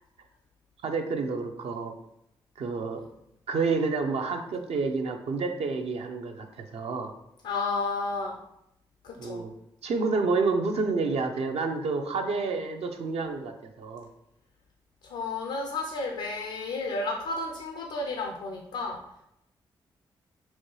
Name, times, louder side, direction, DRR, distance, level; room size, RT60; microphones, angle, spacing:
voice 1, 0.8-1.9 2.6-3.0 3.5-7.1 9.2-9.5 9.8-14.1, right 4 dB, 65° right, 5 dB, 0.5 m, -29 dB
voice 2, 7.4-8.4 9.0-9.4 15.0-19.0, left 3 dB, 85° left, 0 dB, 0.5 m, -32 dB
4.2 x 2.3 x 3.1 m, 0.81 s
hypercardioid pair, 40°, 11 cm